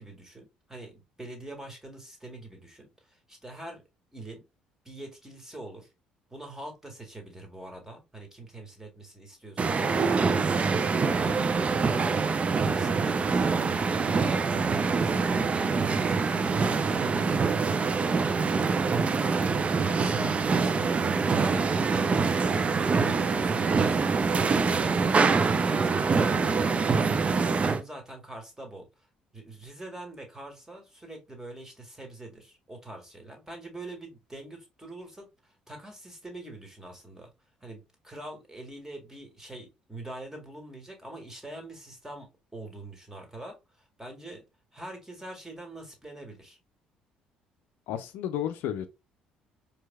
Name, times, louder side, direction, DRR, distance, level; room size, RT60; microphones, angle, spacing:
voice 1, 0.0-3.8 4.1-4.4 4.9-5.9 6.3-17.6 19.2-21.0 21.3-24.1 24.4-25.3 25.7-28.9 29.3-37.3 37.6-42.3 42.5-43.6 44.0-44.4 44.7-46.6, right 1 dB, 15° right, 1.9 m, -44 dB
sound 1, 9.6-27.8, right 4 dB, 35° right, 0.5 m, -25 dB
voice 2, 47.9-48.9, left 10 dB, 65° left, 0.4 m, -32 dB
4.5 x 3.4 x 2.3 m
hypercardioid pair, 50°, 4 cm